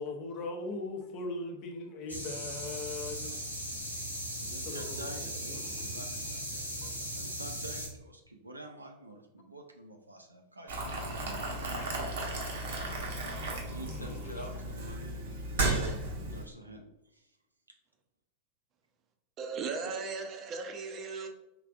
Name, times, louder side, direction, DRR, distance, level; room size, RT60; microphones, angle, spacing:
voice 1, 0.0-3.4 4.4-6.1 6.8-6.9 11.4-11.9 13.4-14.3, left 3 dB, 40° left, 0.7 m, -41 dB
sound 1, 2.1-7.9, equal, 90° left, 0.8 m, -38 dB
voice 2, 4.4-12.0 13.6-15.7 16.2-16.9 17.1-17.3 17.7-17.8, right 1 dB, 85° right, 0.5 m, -48 dB
Boiling, 10.7-16.4, right 2 dB, 60° right, 0.9 m, -34 dB
voice 3, 19.4-21.3, right 4 dB, 30° right, 0.6 m, -37 dB
4.9 x 3.2 x 2.4 m
figure-of-eight pair, 90°, 0 cm